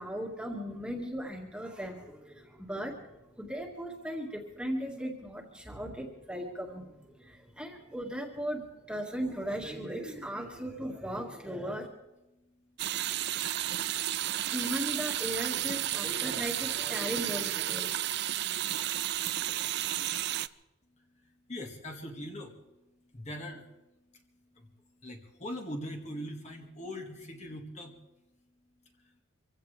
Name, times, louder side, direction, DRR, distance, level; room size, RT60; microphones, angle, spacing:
voice 1, 0.0-11.9 14.5-17.9, equal, 5° right, 0 dB, 1.9 m, -37 dB
voice 2, 12.3-12.8 21.0-22.8 23.1-23.7 24.1-24.2 24.5-24.7 25.0-28.0 29.0-29.2, equal, 30° left, 2 dB, 1.8 m, -42 dB
sound 1, 12.8-20.5, right 13 dB, 50° right, 0.4 m, -32 dB
25.5 x 16.0 x 3.4 m, 0.99 s
head